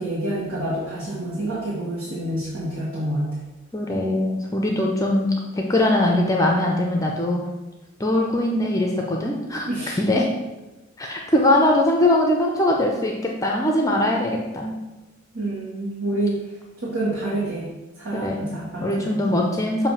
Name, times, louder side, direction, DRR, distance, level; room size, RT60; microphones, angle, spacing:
voice 1, 0.0-3.4 9.7-10.0 15.3-17.7 18.0-19.4, right 1 dB, 70° right, -7 dB, 1.5 m, -28 dB
voice 2, 3.7-7.4 8.0-9.7 10.0-10.3 11.0-14.7 18.2-18.5 18.8-19.9, left 1 dB, 15° left, 0 dB, 0.5 m, -21 dB
6.8 x 2.7 x 5.5 m, 1.1 s
head